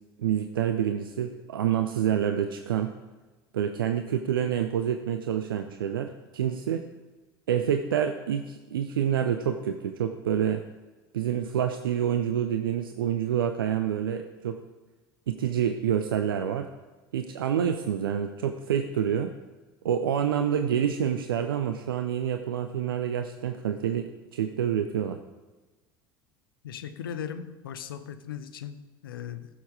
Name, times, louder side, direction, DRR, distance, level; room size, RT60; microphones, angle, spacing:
voice 1, 0.2-2.9 3.5-6.8 7.5-10.6 11.1-14.6 15.3-16.7 17.1-19.3 19.8-25.2, right 9 dB, 70° right, 0.6 m, -27 dB
voice 2, 26.6-29.5, left 8 dB, 70° left, 0.8 m, -38 dB
15.5 x 7.0 x 4.9 m
figure-of-eight pair, 70°, 12 cm